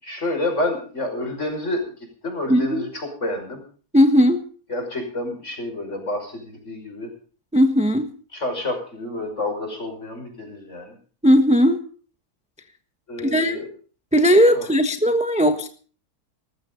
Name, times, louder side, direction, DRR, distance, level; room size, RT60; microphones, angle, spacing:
voice 1, 0.0-1.8 2.2-3.6 4.7-7.1 8.3-11.0 13.1-13.7 14.5-14.7, left 1 dB, 50° left, 4 dB, 6.1 m, -29 dB
voice 2, 2.5-2.9 3.9-4.4 7.5-8.1 11.2-11.8 13.2-13.6 14.1-15.7, equal, 5° right, 8 dB, 1.1 m, -17 dB
20.0 x 14.5 x 3.9 m, 0.41 s
omnidirectional pair, 1.6 m